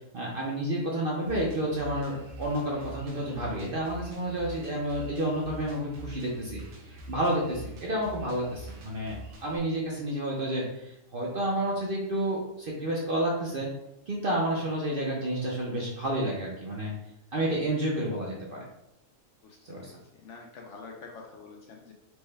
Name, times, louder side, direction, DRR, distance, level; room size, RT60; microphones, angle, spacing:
voice 1, 0.1-6.6 7.1-13.7 14.1-16.9 17.3-18.6 19.6-19.9, right 1 dB, 55° right, -3 dB, 0.7 m, -30 dB
Drum kit, 1.2-9.6, right 1 dB, 75° right, 1.2 m, -45 dB
voice 2, 19.4-21.9, left 4 dB, 65° left, 0 dB, 0.8 m, -47 dB
4.5 x 2.2 x 3.2 m, 0.83 s
omnidirectional pair, 1.5 m